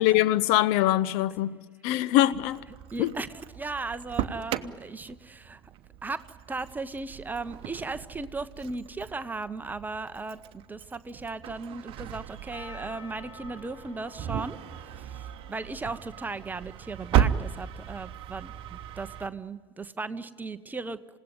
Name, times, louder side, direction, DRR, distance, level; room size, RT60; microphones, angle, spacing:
voice 1, 0.0-1.5 1.8-2.6 3.0-3.1, left 14 dB, 50° left, 0.7 m, -23 dB
Engine starting, 2.3-19.3, right 10 dB, 40° right, 1.0 m, -35 dB
voice 2, 2.9-3.3 3.5-5.6 6.0-21.0, right 3 dB, 15° right, 0.9 m, -37 dB
Percussion, 12.5-16.9 17.5-17.6, left 4 dB, 80° left, 5.1 m, -50 dB
28.0 x 17.0 x 9.5 m
figure-of-eight pair, 75°, 14 cm